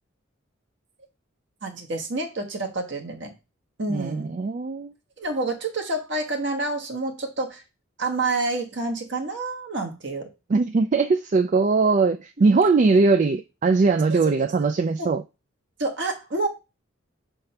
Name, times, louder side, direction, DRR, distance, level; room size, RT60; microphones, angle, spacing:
voice 1, 1.6-3.3 3.8-4.3 5.2-7.6 8.0-10.3 14.1-14.3 15.0-15.1 15.8-16.5, right 2 dB, 60° right, 1.3 m, -28 dB
voice 2, 3.9-4.9 10.5-15.2, right 4 dB, 35° right, 0.3 m, -20 dB
5.7 x 3.6 x 5.4 m
head